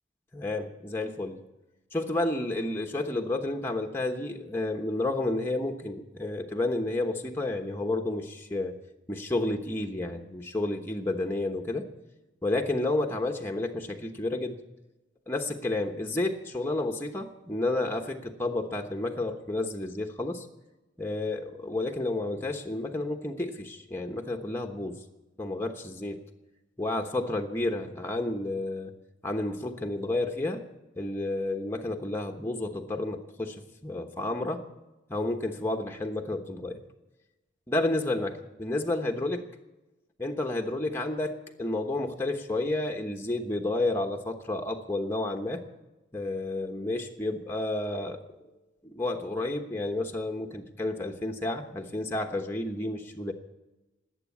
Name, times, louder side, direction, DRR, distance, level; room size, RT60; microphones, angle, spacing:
voice 1, 0.3-1.4 1.9-8.7 9.1-11.8 12.4-14.6 15.3-20.5 21.0-25.0 25.4-26.2 26.8-28.9 29.2-30.6 31.0-34.6 35.1-36.8 37.7-39.4 40.2-45.6 46.1-48.2 48.8-53.3, left 2 dB, 10° left, 2 dB, 1.1 m, -31 dB
19.0 x 8.4 x 8.5 m, 1.0 s
head